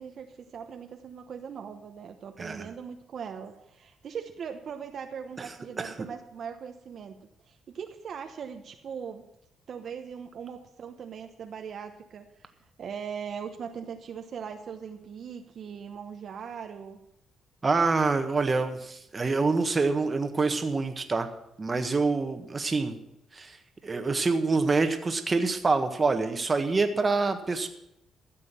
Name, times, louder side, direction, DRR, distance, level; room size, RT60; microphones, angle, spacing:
voice 1, 0.0-7.2 7.5-9.2 9.7-12.5 12.8-17.0, right 7 dB, 55° right, 5 dB, 1.1 m, -40 dB
voice 2, 17.6-21.3 21.6-23.0 23.3-23.6 23.8-27.7, right 3 dB, 25° right, 7 dB, 1.5 m, -26 dB
14.0 x 7.6 x 7.5 m, 0.81 s
cardioid pair, 110°, 0 cm